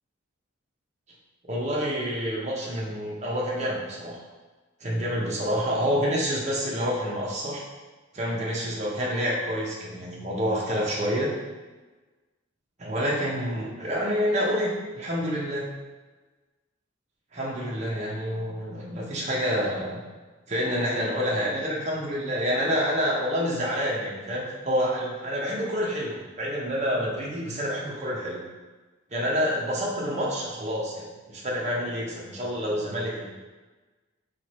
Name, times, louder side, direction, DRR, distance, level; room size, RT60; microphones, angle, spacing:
voice 1, 1.5-4.2 4.8-7.6 8.1-11.3 12.8-15.7 17.3-20.0 20.5-28.4 29.1-33.3, equal, 35° right, -4 dB, 0.8 m, -28 dB
4.6 x 2.5 x 4.2 m, 1.3 s
head